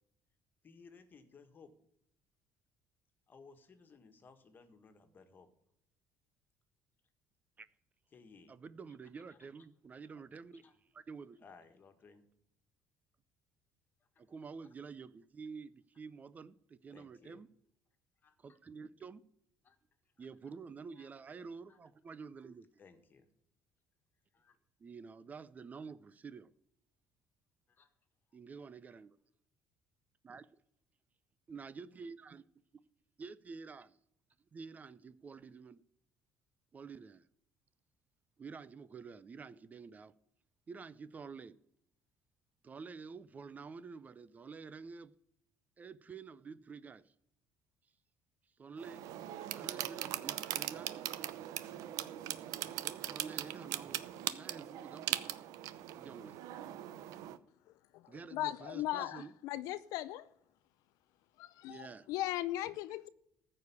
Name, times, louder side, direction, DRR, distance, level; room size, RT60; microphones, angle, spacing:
voice 1, 0.6-1.7 3.3-5.5 8.1-8.5 9.3-9.4 10.6-10.7 11.4-12.2 16.9-17.4 18.2-18.6 19.6-19.8 20.2-20.3 20.9-21.1 21.7-21.8 22.8-23.3 24.3-24.6 27.7-27.9, left 5 dB, 35° left, 1.6 m, -59 dB
voice 2, 8.5-10.6 10.9-11.4 14.2-17.5 18.4-19.2 20.2-22.7 24.8-26.5 28.3-29.2 30.2-30.5 31.5-32.4 33.2-34.0 34.5-35.8 36.7-37.3 38.4-40.1 40.7-41.6 42.6-45.2 45.8-47.1 48.6-49.0 49.5-51.0 52.6-55.3 56.0-56.4 58.1-59.3 61.7-62.1, right 5 dB, 25° right, 0.5 m, -49 dB
sound 1, 48.8-57.4, right 13 dB, 75° right, 0.7 m, -40 dB
voice 3, 57.9-60.3 61.4-63.1, left 14 dB, 75° left, 0.5 m, -38 dB
14.5 x 4.9 x 8.4 m
cardioid pair, 125°, 6 cm